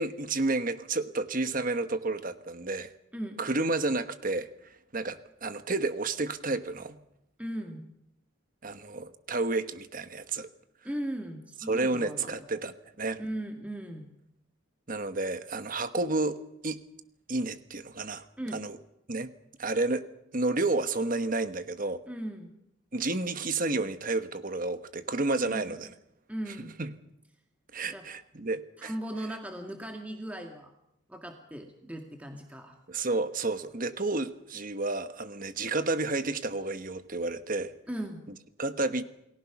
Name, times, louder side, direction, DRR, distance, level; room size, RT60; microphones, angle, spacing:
voice 1, 0.0-2.9 3.4-7.0 8.6-10.5 11.7-13.2 14.9-16.8 17.3-18.2 18.5-18.8 19.1-19.3 19.6-20.0 20.3-22.0 22.9-25.9 26.5-26.9 27.7-28.9 32.9-37.7 38.6-39.0, right 2 dB, 40° right, 10 dB, 1.2 m, -31 dB
voice 2, 7.4-7.9 10.8-12.4 13.2-14.1 18.4-18.6 22.1-22.5 25.4-25.7 26.3-26.7 27.9-28.1 28.8-30.7 31.1-32.8 37.9-38.3, right 1 dB, 5° right, 3 dB, 1.9 m, -37 dB
29.0 x 19.5 x 6.0 m, 0.79 s
head